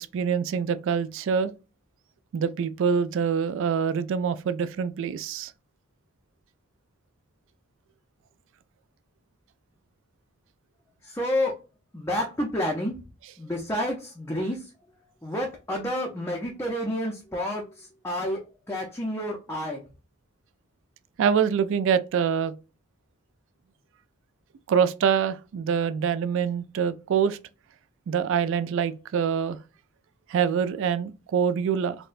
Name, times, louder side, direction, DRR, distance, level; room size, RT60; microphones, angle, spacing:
voice 1, 0.0-1.5 2.3-5.5 13.2-13.3 21.2-22.5 24.7-27.4 28.1-29.6 30.3-32.0, right 7 dB, 60° right, 0.3 m, -25 dB
voice 2, 11.0-11.6 11.9-12.9 13.4-14.6 15.2-18.4 18.7-19.8, left 1 dB, 10° left, 0.5 m, -29 dB
4.2 x 2.1 x 2.4 m
head